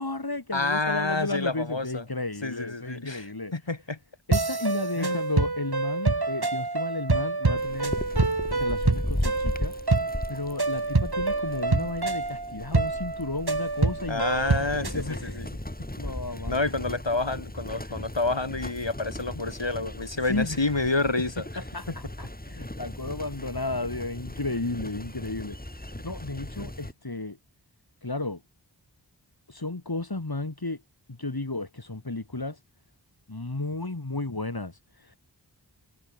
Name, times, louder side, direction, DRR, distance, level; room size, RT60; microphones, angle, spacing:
voice 1, 0.0-3.5 4.3-8.0 8.5-9.7 10.3-14.2 14.8-15.5 16.0-16.6 20.2-20.7 21.6-27.4 28.0-28.4 29.5-30.8 31.1-32.6 33.3-35.2, left 2 dB, 55° left, 4.9 m, -33 dB
voice 2, 0.5-2.0 2.4-3.2 3.5-4.0 5.0-5.3 14.1-15.5 16.5-21.5, left 3 dB, 85° left, 6.2 m, -28 dB
sound 1, 4.3-15.0, right 3 dB, 60° right, 2.9 m, -27 dB
sound 2, 7.6-26.9, left 1 dB, 20° left, 5.0 m, -37 dB
wide cardioid pair, 40°, 43 cm